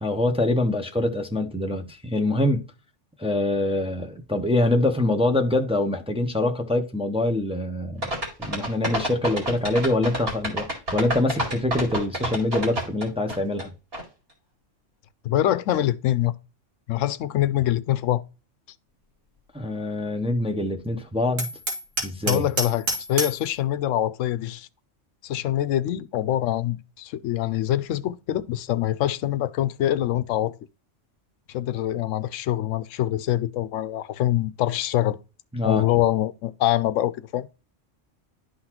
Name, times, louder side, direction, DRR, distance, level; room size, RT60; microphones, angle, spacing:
voice 1, 0.0-2.6 3.2-13.7 19.5-21.5 22.0-22.5 35.5-35.9, left 2 dB, 5° right, 0.6 m, -24 dB
sound 1, 8.0-13.6 13.9-14.0, right 1 dB, 50° right, 2.5 m, -28 dB
voice 2, 15.2-16.3 16.9-18.2 22.3-24.7 25.2-30.6 31.5-35.2 35.6-37.5, left 13 dB, 85° left, 0.9 m, -24 dB
Hammer, 21.4-23.5, right 1 dB, 85° right, 2.3 m, -29 dB
11.5 x 4.0 x 2.9 m
omnidirectional pair, 1.3 m